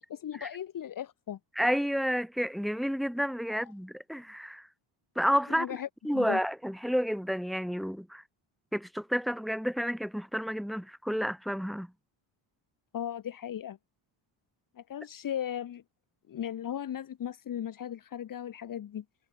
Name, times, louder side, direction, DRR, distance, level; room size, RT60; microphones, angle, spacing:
voice 1, 0.1-1.4 3.5-3.6 5.5-6.4 12.9-13.8 14.8-15.8 16.3-19.0, left 10 dB, 45° left, 3.1 m, -37 dB
voice 2, 1.6-4.7 5.2-5.8 6.0-8.2 8.7-11.9, equal, ahead, 3.6 m, -30 dB
cardioid pair, 160°, 46 cm